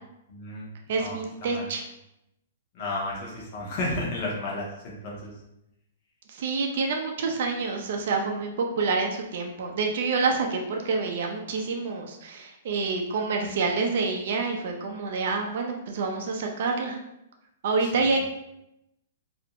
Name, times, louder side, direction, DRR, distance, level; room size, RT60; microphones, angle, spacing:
voice 1, 0.3-0.7 0.9-1.2 1.4-1.6 2.7-5.3 18.0-18.2, left 2 dB, 40° left, -4 dB, 0.7 m, -32 dB
voice 2, 0.9-1.8 6.3-17.0 17.6-18.2, right 4 dB, 60° right, 2 dB, 0.4 m, -27 dB
2.4 x 2.1 x 2.8 m, 0.84 s
hypercardioid pair, 145°, 0 cm